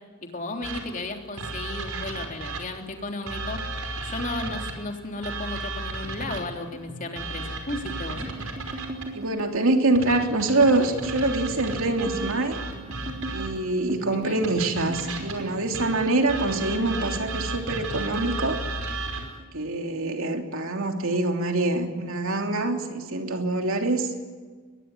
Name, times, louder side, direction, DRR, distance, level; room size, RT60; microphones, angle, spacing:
voice 1, 0.2-3.6 4.0-8.2 14.1-14.5, left 2 dB, 40° left, 3 dB, 3.5 m, -34 dB
sound 1, 0.6-2.8 3.3-6.6 7.2-9.2 9.9-13.7 14.4-19.4, right 2 dB, 80° right, 5.4 m, -34 dB
sound 2, 6.1-18.6 18.9-20.0 20.2-20.6 20.9-21.6, right 2 dB, 35° right, 3.8 m, -39 dB
voice 2, 9.1-12.6 13.3-18.6 19.5-24.1, right 2 dB, 65° right, 4 dB, 3.2 m, -25 dB
23.0 x 21.5 x 9.9 m, 1.4 s
head